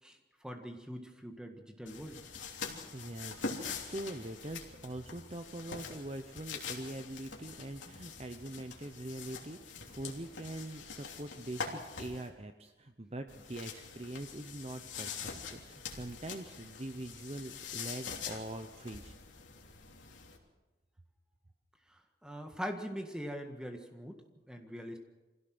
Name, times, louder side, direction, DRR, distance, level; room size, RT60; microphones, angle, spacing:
voice 1, 0.0-2.2 21.9-25.0, equal, 5° right, 4 dB, 1.8 m, -43 dB
sound 1, 1.9-12.3 13.3-20.4, left 5 dB, 90° left, 3.2 m, -44 dB
voice 2, 2.9-19.1, right 1 dB, 35° right, 7 dB, 0.8 m, -43 dB
25.5 x 16.5 x 6.1 m, 1.2 s
head